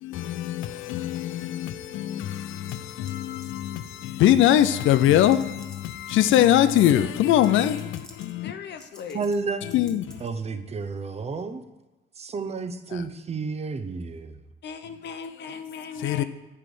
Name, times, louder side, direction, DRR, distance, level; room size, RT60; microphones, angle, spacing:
voice 1, 0.0-8.5 9.6-10.3 12.9-13.0 15.9-16.2, left 12 dB, 80° left, 0.5 m, -22 dB
sound 1, 2.7-3.2 3.4-3.7 4.7-4.8 5.2-6.8 7.4-7.5 7.8-8.3 8.8-9.4 9.7-10.3, equal, 5° left, 1.3 m, -50 dB
voice 2, 8.4-9.3 14.6-16.2, left 6 dB, 60° left, 0.8 m, -38 dB
voice 3, 9.1-9.6 10.2-11.6 12.2-14.4, right 4 dB, 30° right, 0.7 m, -31 dB
9.8 x 3.3 x 6.8 m
cardioid pair, 90°, 20 cm